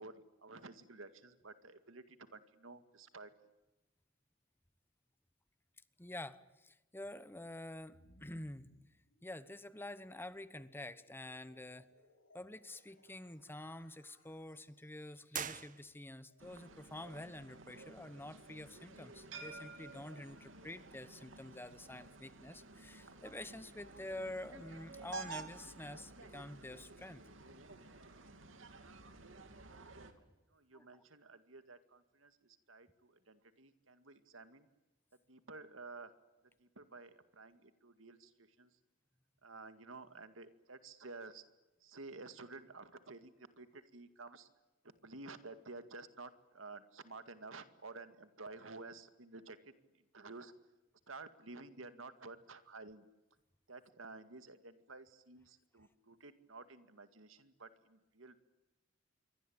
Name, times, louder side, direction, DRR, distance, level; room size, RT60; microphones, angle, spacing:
voice 1, 0.0-3.3 29.8-30.1 30.5-34.7 35.1-36.1 36.6-38.8 39.4-41.4 41.8-44.5 44.8-50.5 51.1-53.1 53.7-58.4, right 3 dB, 90° right, 10 dB, 2.1 m, -52 dB
voice 2, 6.0-8.7 9.2-11.9 12.3-27.2 30.7-31.0, left 1 dB, 10° left, 14 dB, 1.0 m, -48 dB
sound 1, 7.9-22.0, left 2 dB, 85° left, 6.1 m, -71 dB
sound 2, 15.3-16.4, right 8 dB, 40° right, 1.1 m, -44 dB
sound 3, 16.4-30.1, right 3 dB, 70° right, 2.8 m, -52 dB
27.5 x 23.5 x 8.8 m, 1.0 s
head